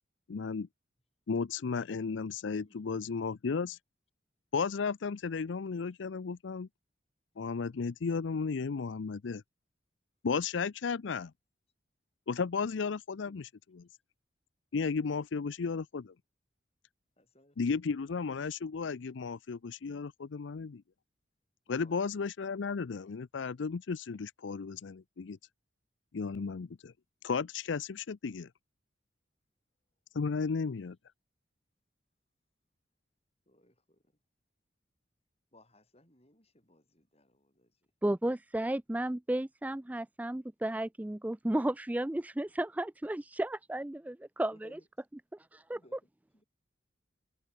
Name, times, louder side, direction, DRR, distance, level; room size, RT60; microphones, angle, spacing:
voice 1, 0.3-0.7 1.3-3.8 4.5-6.7 7.4-9.4 10.2-11.3 12.3-13.9 14.7-16.1 17.6-20.8 21.7-25.4 26.1-26.9 27.2-28.5 30.1-31.0, left 5 dB, 80° left, 0.5 m, -34 dB
voice 2, 17.2-17.6 21.7-22.0 33.5-34.1 35.5-37.7 44.5-44.9 45.7-46.0 46.3-46.4, left 1 dB, 35° left, 7.5 m, -62 dB
voice 3, 38.0-44.8 45.5-45.8, right 1 dB, 10° right, 0.3 m, -33 dB
head